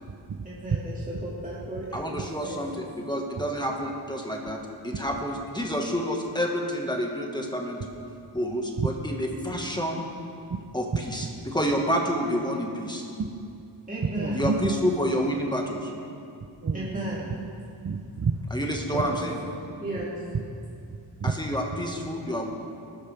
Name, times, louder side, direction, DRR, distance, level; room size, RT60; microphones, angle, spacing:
voice 1, 0.4-0.9 1.2-2.7 13.9-14.4 16.7-17.3 18.9-19.0 19.8-20.2, right 1 dB, 15° right, -7 dB, 2.5 m, -34 dB
voice 2, 1.9-4.6 4.8-7.8 8.3-10.0 10.7-13.0 14.3-15.9 18.5-19.4 21.2-22.5, equal, 10° left, 0 dB, 1.7 m, -29 dB
voice 3, 14.2-14.8 16.6-17.4 17.6-18.3 18.9-19.0 19.6-19.7 20.3-20.4 20.9-21.3, right 5 dB, 40° right, 10 dB, 0.7 m, -30 dB
19.0 x 12.5 x 3.5 m, 2.5 s
wide cardioid pair, 90°, 45 cm